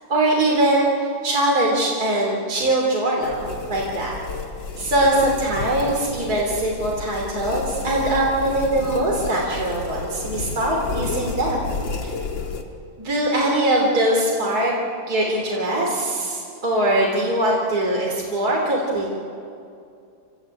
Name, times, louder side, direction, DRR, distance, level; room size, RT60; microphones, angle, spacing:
voice 1, 0.1-4.2 4.8-11.7 13.0-14.7 15.1-19.1, right 1 dB, 50° right, -2 dB, 3.8 m, -22 dB
sound 1, 3.2-12.6, left 4 dB, 75° left, 2.5 m, -31 dB
28.5 x 17.0 x 8.6 m, 2.5 s
omnidirectional pair, 2.1 m